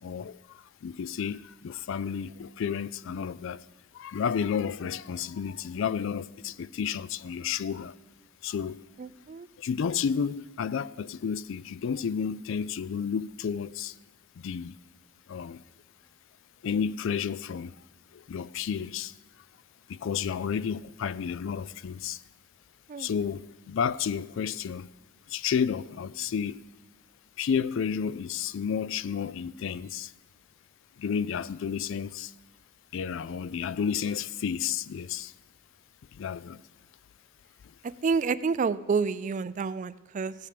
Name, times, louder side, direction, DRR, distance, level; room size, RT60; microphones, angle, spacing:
voice 1, 0.0-3.6 3.9-8.0 8.4-8.8 9.6-14.0 14.4-14.8 15.3-15.6 16.6-17.7 18.1-19.1 19.9-22.2 23.0-24.9 25.3-26.6 27.4-30.1 31.0-32.3 32.9-35.3 36.1-36.6 37.6-37.8, left 7 dB, 60° left, 0.3 m, -31 dB
voice 2, 9.0-9.5 22.9-23.1 38.0-40.3, right 5 dB, 35° right, 0.3 m, -29 dB
16.0 x 8.6 x 5.1 m
head